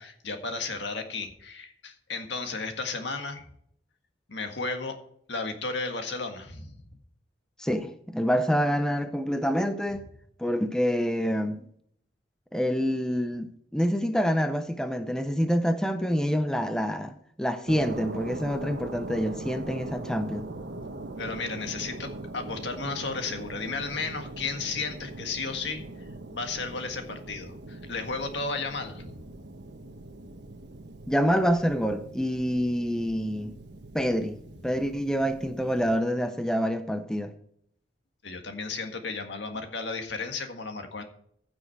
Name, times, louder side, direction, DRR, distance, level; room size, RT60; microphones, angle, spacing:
voice 1, 0.0-3.5 4.3-4.9 5.3-6.8 21.2-25.8 26.3-29.0 38.2-41.0, left 4 dB, 75° left, 1.7 m, -34 dB
voice 2, 7.6-10.0 10.4-11.6 12.5-20.5 31.1-33.6 33.9-37.3, equal, 5° left, 0.6 m, -27 dB
sound 1, 17.7-36.0, right 2 dB, 70° right, 1.2 m, -41 dB
15.5 x 6.2 x 4.7 m
head